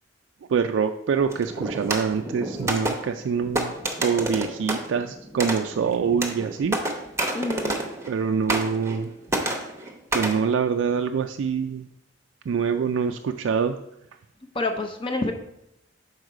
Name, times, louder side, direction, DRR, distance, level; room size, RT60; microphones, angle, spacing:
voice 1, 0.5-3.7 4.0-6.8 8.1-9.1 10.1-11.8 12.5-13.8, right 6 dB, 75° right, 6 dB, 0.3 m, -25 dB
sound 1, 1.3-8.2 8.5-9.0 9.3-10.4, right 1 dB, 15° right, 0.8 m, -29 dB
voice 2, 7.3-7.8 14.5-15.3, left 2 dB, 25° left, 4 dB, 0.6 m, -27 dB
6.4 x 4.7 x 4.7 m, 0.82 s
head